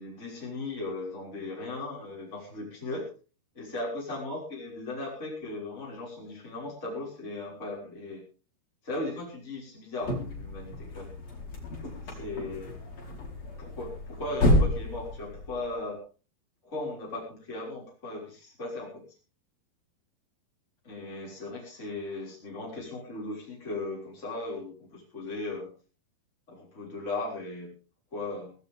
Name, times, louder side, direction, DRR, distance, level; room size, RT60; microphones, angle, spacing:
voice 1, 0.0-3.1 3.5-8.2 8.8-11.2 12.0-12.7 13.6-16.0 16.6-19.0 20.8-25.7 26.5-27.7 28.1-28.5, left 2 dB, 15° left, -4 dB, 6.2 m, -37 dB
sound 1, 10.0-15.9, left 1 dB, 40° left, 5.6 m, -30 dB
18.5 x 17.0 x 3.6 m, 0.36 s
omnidirectional pair, 4.5 m